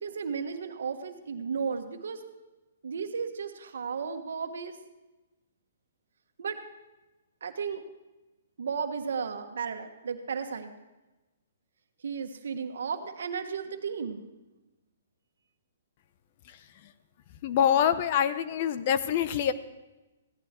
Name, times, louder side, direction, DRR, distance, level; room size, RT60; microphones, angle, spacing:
voice 1, 0.0-2.2 2.8-4.8 6.4-6.6 7.4-7.8 8.6-10.7 12.0-14.2, right 6 dB, 75° right, 6 dB, 1.5 m, -34 dB
voice 2, 16.5-16.9 17.4-19.5, left 9 dB, 40° left, 13 dB, 0.8 m, -26 dB
16.0 x 11.5 x 4.5 m, 1.1 s
hypercardioid pair, 150°, 0 cm